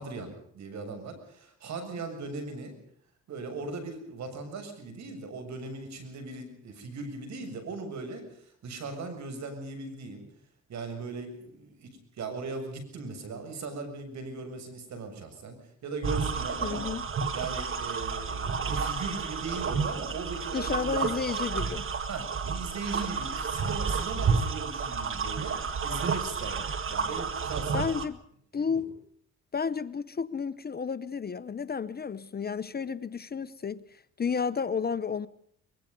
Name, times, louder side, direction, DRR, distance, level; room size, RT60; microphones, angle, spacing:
voice 1, 0.0-2.7 3.3-10.3 10.7-11.9 12.2-16.8 17.3-21.3 22.1-27.9 28.6-28.8, right 3 dB, 65° right, 7.1 m, -38 dB
sound 1, 16.0-28.1, right 5 dB, 45° right, 1.9 m, -31 dB
voice 2, 16.6-17.0 20.5-21.9 27.7-28.2 28.5-28.9 29.5-33.8 34.2-35.3, left 6 dB, 30° left, 0.9 m, -31 dB
24.0 x 22.0 x 5.4 m
cardioid pair, 90°, 30 cm